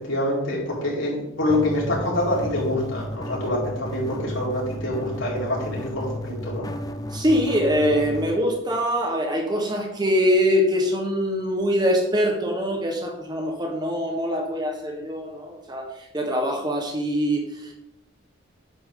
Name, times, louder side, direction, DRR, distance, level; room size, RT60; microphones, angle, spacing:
voice 1, 0.0-6.7, left 1 dB, 70° left, -4 dB, 4.6 m, -26 dB
sound 1, 1.5-8.4, left 1 dB, 20° left, 0.6 m, -33 dB
voice 2, 7.1-17.7, equal, 20° right, 2 dB, 1.4 m, -23 dB
11.0 x 8.7 x 3.9 m, 0.86 s
head